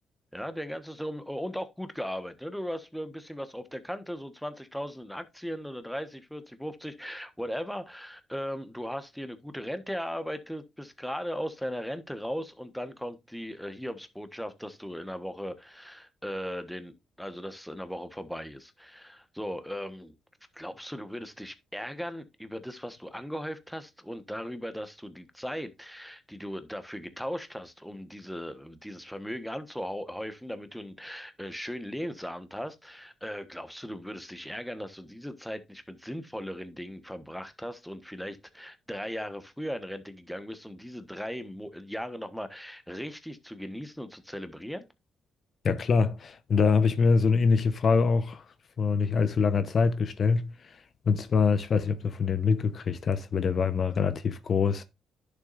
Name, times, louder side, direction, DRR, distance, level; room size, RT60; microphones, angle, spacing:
voice 1, 0.3-20.1 20.5-44.9, equal, ahead, 1.2 m, -38 dB
voice 2, 45.6-48.4 48.8-54.8, left 5 dB, 50° left, 0.8 m, -24 dB
10.5 x 6.8 x 2.5 m
cardioid pair, 90°, 0 cm